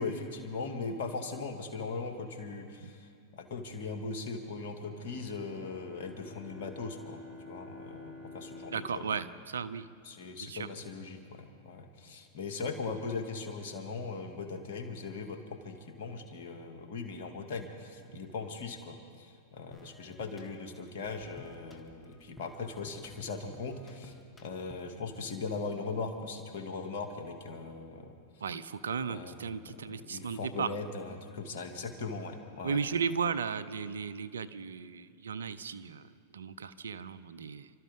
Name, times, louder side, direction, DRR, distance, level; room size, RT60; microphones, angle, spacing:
voice 1, 0.0-7.2 7.5-9.0 10.0-24.1 24.4-28.1 29.1-29.3 30.1-32.8, left 4 dB, 65° left, 4 dB, 2.2 m, -39 dB
Bowed string instrument, 5.0-10.5, left 2 dB, 45° right, 3.5 m, -50 dB
voice 2, 8.7-9.9 10.4-10.7 28.4-30.7 32.6-37.7, right 6 dB, 80° right, 15 dB, 0.6 m, -35 dB
sound 1, 19.7-25.0, left 2 dB, 15° left, 2.0 m, -54 dB
29.0 x 13.0 x 3.7 m, 2.2 s
hypercardioid pair, 100°, 0 cm